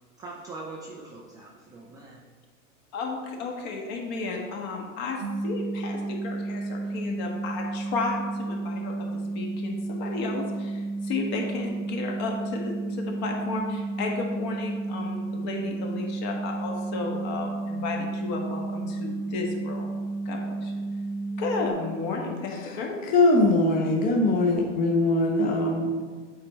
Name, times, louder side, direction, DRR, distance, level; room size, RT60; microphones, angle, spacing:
voice 1, 0.2-2.2, right 3 dB, 10° right, -3 dB, 0.3 m, -42 dB
voice 2, 2.9-20.0 20.2-20.7 21.4-23.0, left 3 dB, 45° left, 1 dB, 1.5 m, -33 dB
sound 1, 5.2-21.7, right 3 dB, 85° right, 1.3 m, -32 dB
voice 3, 23.0-26.0, left 2 dB, 20° left, 0 dB, 0.8 m, -22 dB
8.2 x 4.4 x 3.2 m, 1.5 s
hypercardioid pair, 115°, 39 cm